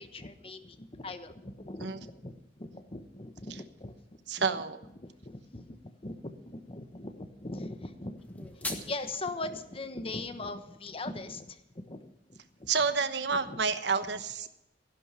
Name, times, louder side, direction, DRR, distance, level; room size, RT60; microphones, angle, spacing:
voice 1, 0.0-3.9 4.4-4.6 5.0-12.7 13.5-13.6, left 2 dB, 35° left, 9 dB, 1.1 m, -41 dB
voice 2, 4.3-4.8 12.7-14.5, right 5 dB, 75° right, 10 dB, 1.1 m, -29 dB
sound 1, 8.2-9.2, left 1 dB, 10° left, 1.4 m, -39 dB
15.0 x 11.0 x 5.7 m, 0.87 s
head